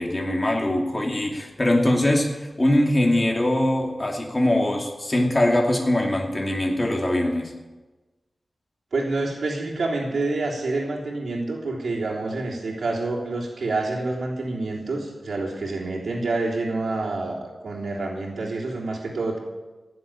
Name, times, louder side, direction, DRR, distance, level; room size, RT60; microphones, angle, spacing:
voice 1, 0.0-7.5, left 1 dB, 25° left, 0 dB, 2.7 m, -22 dB
voice 2, 8.9-19.4, right 2 dB, 80° right, -3 dB, 3.4 m, -27 dB
16.5 x 7.8 x 8.8 m, 1.2 s
wide cardioid pair, 95°, 0 cm